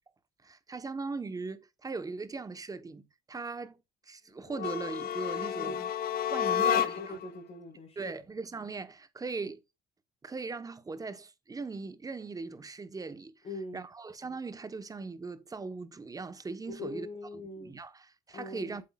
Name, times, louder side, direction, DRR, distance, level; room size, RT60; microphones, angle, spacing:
voice 1, 0.4-3.8 4.1-5.9 6.3-7.2 8.0-9.6 10.2-13.4 13.7-17.1 17.6-18.8, right 4 dB, 20° right, 0.9 m, -39 dB
sound 1, 4.5-7.3, left 9 dB, 65° left, 0.7 m, -30 dB
voice 2, 6.6-8.1 13.4-13.8 16.7-17.8 18.3-18.8, left 2 dB, 40° left, 3.6 m, -42 dB
8.1 x 7.5 x 2.3 m
cardioid pair, 110°, 17 cm